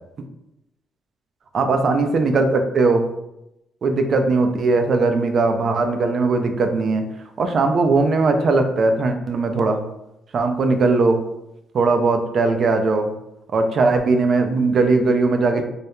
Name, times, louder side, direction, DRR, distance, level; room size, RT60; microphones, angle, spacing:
voice 1, 1.5-3.1 3.8-7.0 7.4-9.8 10.3-11.2 11.7-13.1 13.5-15.6, right 3 dB, 55° right, 6 dB, 0.3 m, -19 dB
2.2 x 2.0 x 2.9 m, 0.86 s
cardioid pair, 90°, 0 cm